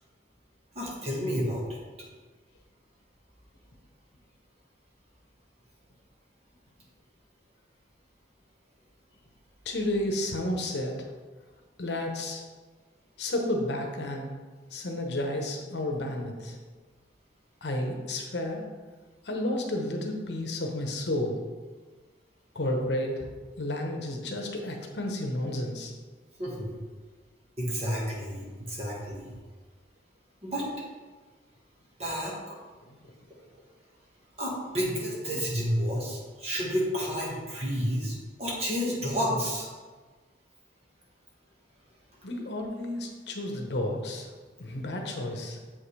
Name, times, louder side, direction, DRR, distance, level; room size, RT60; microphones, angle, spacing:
voice 1, 0.7-1.8 26.4-26.7 27.6-29.3 30.4-30.7 32.0-32.6 34.4-39.7, equal, 35° right, -4 dB, 1.6 m, -30 dB
voice 2, 9.6-11.1 11.8-12.4 13.2-14.3 14.7-16.6 17.6-18.6 19.2-21.4 22.5-23.3 23.6-25.9 32.9-33.0 42.2-44.3 44.6-45.6, left 1 dB, 70° left, 2 dB, 1.0 m, -31 dB
7.4 x 5.6 x 3.3 m, 1.4 s
head